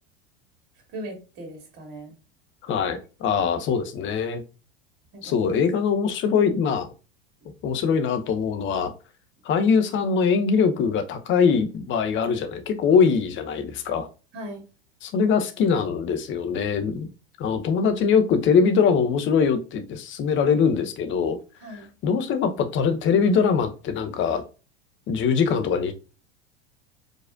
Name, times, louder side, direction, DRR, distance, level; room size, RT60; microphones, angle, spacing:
voice 1, 0.9-2.1 5.1-5.4 14.3-14.6 21.6-21.9, right 1 dB, 45° right, 2.7 m, -38 dB
voice 2, 2.7-4.4 5.2-6.9 7.6-8.9 9.4-14.1 15.0-17.1 17.4-21.4 22.0-24.4 25.1-25.9, left 6 dB, 40° left, 0.9 m, -22 dB
4.9 x 4.1 x 2.5 m
hypercardioid pair, 90°, 31 cm